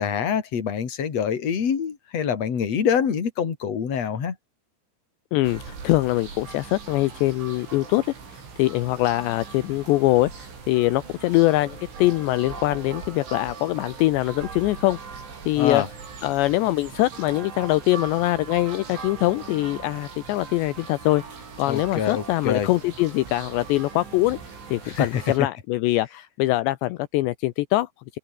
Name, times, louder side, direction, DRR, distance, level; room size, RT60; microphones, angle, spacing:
voice 1, 0.0-4.4 15.6-15.9 21.7-22.7 24.8-25.2, left 7 dB, 40° left, 3.7 m, -25 dB
voice 2, 5.3-8.1 8.6-15.0 15.5-15.8 16.2-21.2 21.6-24.4 24.7-28.2, left 18 dB, 75° left, 3.0 m, -23 dB
sound 1, 5.4-25.4, right 5 dB, 90° right, 9.6 m, -40 dB
omnidirectional pair, 5.3 m